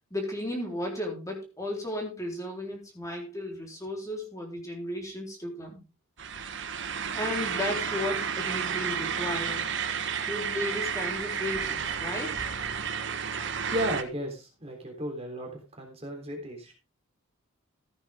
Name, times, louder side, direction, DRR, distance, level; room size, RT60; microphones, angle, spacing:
voice 1, 0.1-5.8 7.1-9.7 10.2-12.5, left 1 dB, 15° left, 0 dB, 3.8 m, -34 dB
sound 1, 6.2-14.0, right 7 dB, 55° right, 1.3 m, -31 dB
voice 2, 13.7-15.5 15.8-16.7, equal, 25° right, 1 dB, 3.5 m, -34 dB
14.5 x 9.0 x 3.6 m, 0.29 s
head